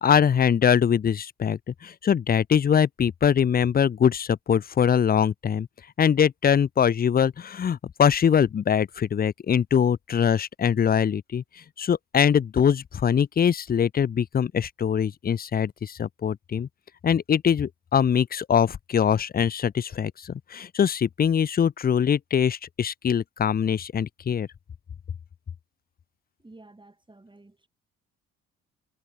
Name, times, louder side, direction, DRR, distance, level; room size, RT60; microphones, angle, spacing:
voice 1, 0.0-5.7 6.0-11.4 11.8-16.7 17.0-24.5, left 8 dB, 30° left, 0.6 m, -23 dB
voice 2, 26.4-27.7, right 2 dB, 15° right, 7.7 m, -51 dB
supercardioid pair, 65°, 30 cm